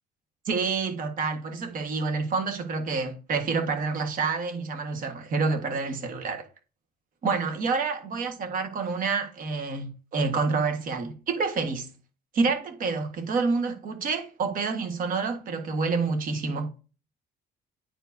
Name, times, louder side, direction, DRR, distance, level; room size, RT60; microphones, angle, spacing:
voice 1, 0.4-6.5 7.2-11.9 12.3-16.7, right 4 dB, 55° right, 1.6 m, -28 dB
9.8 x 4.6 x 2.7 m
cardioid pair, 110°, 17 cm